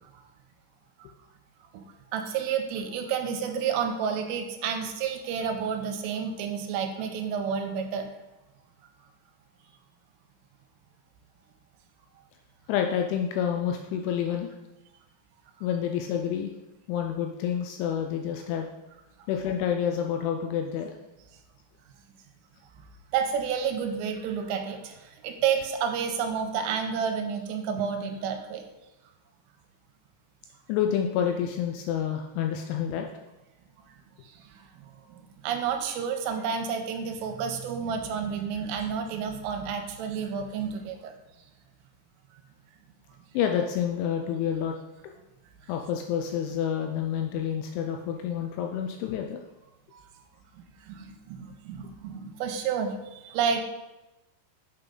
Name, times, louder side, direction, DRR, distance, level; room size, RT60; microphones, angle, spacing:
voice 1, 2.1-8.1 23.1-28.6 33.9-41.1 49.9-50.0 50.5-53.6, right 7 dB, 85° right, 5 dB, 3.2 m, -30 dB
voice 2, 12.7-14.5 15.6-16.5 16.9-18.7 19.3-20.9 30.7-33.1 43.3-44.7 45.7-49.4, left 8 dB, 85° left, 3 dB, 2.7 m, -28 dB
8.3 x 6.5 x 3.9 m, 1.0 s
omnidirectional pair, 5.9 m